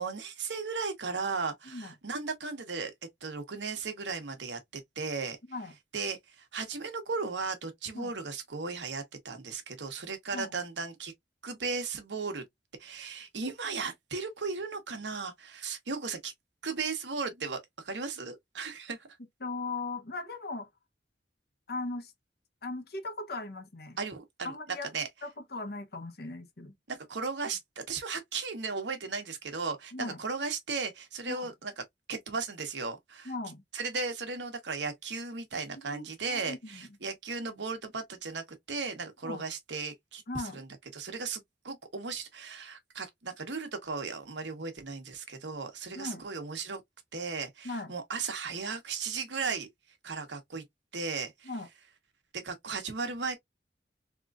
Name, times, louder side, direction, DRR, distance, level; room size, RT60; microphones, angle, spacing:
voice 1, 0.0-2.9 3.2-5.4 5.9-11.1 11.4-12.4 12.8-16.3 16.6-17.6 17.8-19.1 24.0-25.1 26.9-31.7 32.1-33.3 33.7-40.2 40.5-46.8 47.1-49.7 50.0-50.6 50.9-51.5 52.3-53.4, right 4 dB, 80° right, 1.1 m, -36 dB
voice 2, 19.4-20.7 21.7-22.1 22.6-24.0 24.4-24.9 25.2-26.7 29.9-30.2 31.3-31.5 33.2-33.6 35.8-36.9 39.2-39.4 40.3-40.6 45.9-46.2 47.6-47.9 51.4-51.7, left 3 dB, 60° left, 0.9 m, -38 dB
3.7 x 3.0 x 2.4 m
head